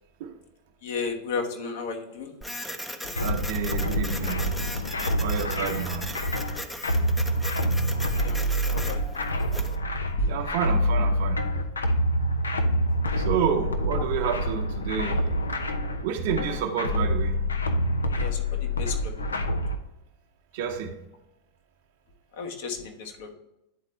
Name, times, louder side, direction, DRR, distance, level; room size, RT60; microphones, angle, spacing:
voice 1, 0.8-2.3 3.0-3.1 8.1-9.1 10.2-10.3 18.1-19.6 22.3-23.3, left 3 dB, 55° left, 3 dB, 1.2 m, -33 dB
Printer, 2.4-9.8, equal, 5° left, 0.6 m, -38 dB
sound 1, 3.2-19.8, equal, 75° left, 0.6 m, -27 dB
voice 2, 3.2-4.5 5.2-6.1 10.3-11.4 13.2-15.2 16.0-17.3 20.5-20.9, right 7 dB, 50° right, 5 dB, 0.9 m, -29 dB
10.0 x 4.1 x 3.2 m, 0.91 s
figure-of-eight pair, 90°, 0 cm